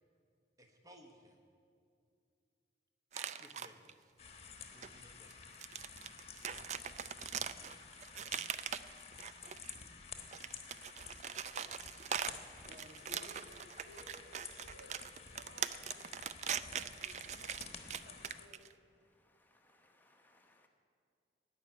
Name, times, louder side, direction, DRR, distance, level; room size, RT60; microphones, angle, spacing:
voice 1, 0.6-1.4 3.1-4.1 4.7-5.4 8.1-8.5, right 1 dB, 20° right, 3 dB, 1.1 m, -58 dB
sound 1, 3.1-3.9 4.8-4.9 5.3-9.8 10.2-18.7, right 8 dB, 40° right, 0.4 m, -41 dB
sound 2, 4.2-18.5, left 6 dB, 35° left, 1.1 m, -52 dB
voice 2, 12.6-15.1 15.4-16.2 16.5-17.8 18.0-18.7, equal, 80° right, 2 dB, 1.9 m, -58 dB
voice 3, 18.9-20.7, left 2 dB, 10° left, 3 dB, 0.9 m, -70 dB
17.0 x 5.8 x 9.8 m, 2.4 s
head